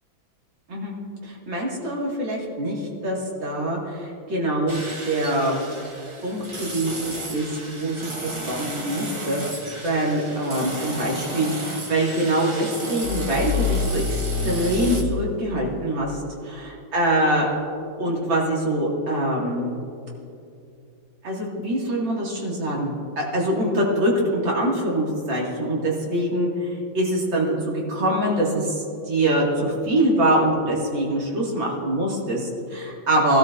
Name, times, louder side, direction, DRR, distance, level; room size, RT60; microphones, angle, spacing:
voice 1, 1.2-5.6 6.2-9.4 9.8-16.1 16.4-17.5 18.0-19.7 21.2-26.7 26.9-33.4, right 1 dB, 75° right, -3 dB, 2.9 m, -24 dB
sound 1, 4.7-15.0, right 2 dB, 30° right, 0.5 m, -34 dB
sound 2, 13.0-16.0, left 5 dB, 75° left, 1.3 m, -27 dB
20.5 x 12.5 x 2.6 m, 2.6 s
omnidirectional pair, 2.1 m